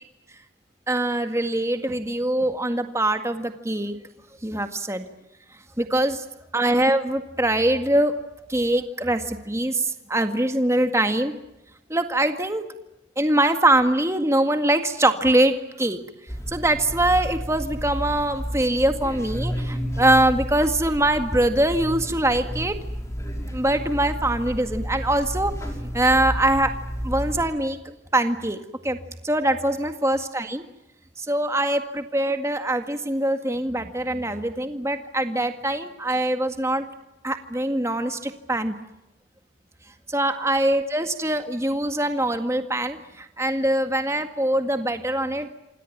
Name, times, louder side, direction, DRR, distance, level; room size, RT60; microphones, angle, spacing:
voice 1, 0.9-4.0 4.4-5.1 5.8-6.2 6.5-8.1 8.5-11.3 11.9-12.6 13.2-16.0 16.5-22.8 23.5-25.5 25.9-26.7 27.0-29.0 29.2-30.6 31.2-36.9 37.2-38.7 40.1-45.5, right 1 dB, 15° right, 7 dB, 1.9 m, -23 dB
sound 1, 16.3-27.4, equal, 15° left, 5.5 m, -31 dB
28.0 x 27.0 x 7.4 m, 0.94 s
head